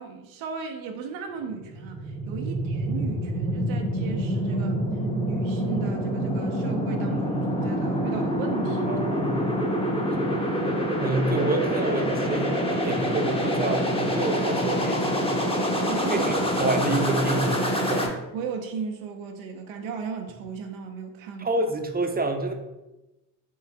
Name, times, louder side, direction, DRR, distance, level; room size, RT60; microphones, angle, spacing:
voice 1, 0.0-4.8 5.2-9.0 15.9-16.4 18.3-21.5, right 5 dB, 80° right, 0.6 m, -36 dB
sound 1, 1.5-18.1, equal, 10° left, 0.9 m, -26 dB
voice 2, 4.5-4.8 8.9-9.4 10.1-10.4 11.0-15.4 16.1-18.1 21.4-22.5, right 2 dB, 20° right, 0.6 m, -28 dB
4.6 x 2.5 x 3.3 m
supercardioid pair, 50°, 47 cm